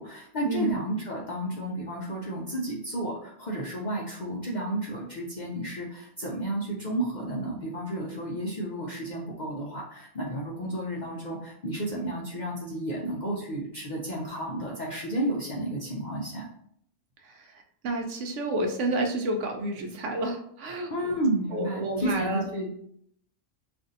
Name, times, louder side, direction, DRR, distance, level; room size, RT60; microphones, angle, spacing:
voice 1, 0.0-16.5 20.9-22.7, right 1 dB, 55° left, -4 dB, 0.5 m, -32 dB
voice 2, 17.2-21.2 21.5-22.5, right 1 dB, 70° right, 4 dB, 0.9 m, -30 dB
2.5 x 2.5 x 3.9 m, 0.69 s
omnidirectional pair, 1.3 m